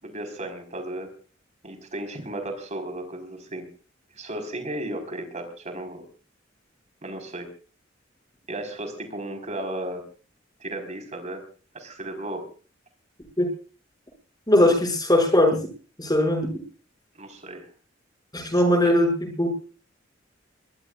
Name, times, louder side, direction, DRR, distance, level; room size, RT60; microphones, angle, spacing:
voice 1, 0.0-1.1 1.6-3.7 4.1-6.0 7.0-7.5 8.5-10.0 10.6-11.4 11.7-12.4 17.2-17.6 18.7-18.9, right 1 dB, 40° right, 5 dB, 4.5 m, -34 dB
voice 2, 14.5-15.6 16.0-16.5 18.3-19.5, left 1 dB, 20° left, 2 dB, 6.4 m, -20 dB
22.0 x 21.5 x 2.5 m, 0.39 s
head